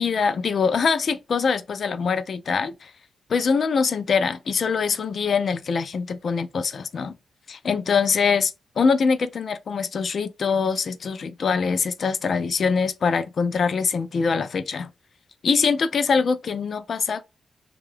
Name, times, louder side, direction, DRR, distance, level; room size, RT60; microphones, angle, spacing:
voice 1, 0.0-2.9 3.3-7.2 7.5-14.9 15.4-17.3, left 5 dB, 60° left, 0.4 m, -23 dB
2.8 x 2.3 x 3.2 m
cardioid pair, 85°, 0 cm